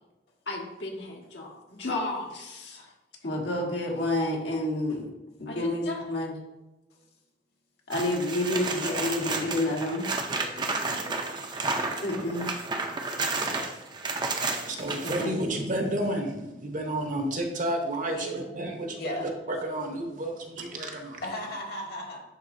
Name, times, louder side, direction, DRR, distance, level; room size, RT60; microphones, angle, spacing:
voice 1, 0.5-2.9 3.2-5.1 5.4-6.4 7.9-10.0 10.4-11.1 12.0-12.5 13.5-13.6 15.0-15.5, left 1 dB, 75° left, -1 dB, 1.4 m, -30 dB
sound 1, 7.9-15.3 17.9-18.0, right 3 dB, 25° right, 0.5 m, -31 dB
voice 2, 10.7-11.0 11.9-12.0 14.5-14.6 18.0-18.4 18.9-19.3 21.2-22.2, equal, 60° left, 0 dB, 1.5 m, -36 dB
voice 3, 14.4-21.2, right 1 dB, 45° right, 3 dB, 0.9 m, -31 dB
10.0 x 3.8 x 2.6 m, 1.0 s
head